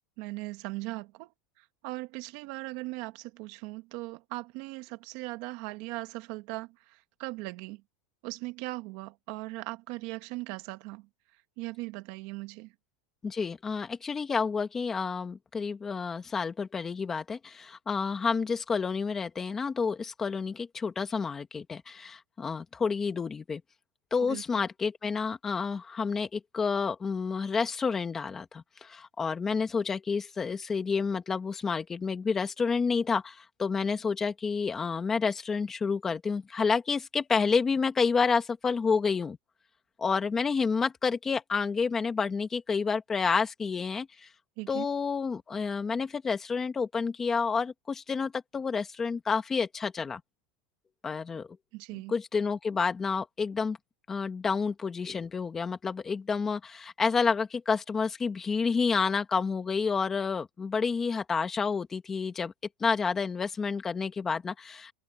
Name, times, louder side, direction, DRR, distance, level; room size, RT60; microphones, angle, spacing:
voice 1, 0.2-1.3 1.6-7.8 8.2-11.1 11.6-12.7 24.2-24.4 44.6-44.9 51.7-52.1, right 22 dB, 50° right, 1.6 m, -39 dB
voice 2, 13.2-23.6 24.1-39.4 40.0-44.3 44.7-50.2 51.0-51.5 52.1-53.8 54.1-62.5 62.8-64.9, left 5 dB, 15° left, 1.7 m, -29 dB
supercardioid pair, 165°, 2 cm